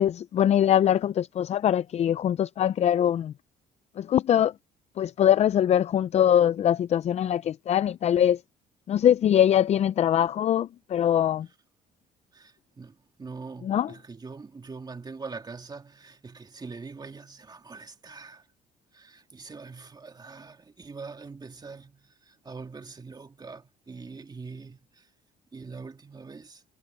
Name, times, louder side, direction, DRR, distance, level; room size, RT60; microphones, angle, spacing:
voice 1, 0.0-3.3 4.0-4.5 5.0-8.4 8.9-11.5 13.6-13.9, left 10 dB, 40° left, 0.4 m, -22 dB
voice 2, 12.3-18.5 18.9-25.1 25.5-26.6, right 4 dB, 25° right, 2.8 m, -43 dB
cardioid pair, 110°, 17 cm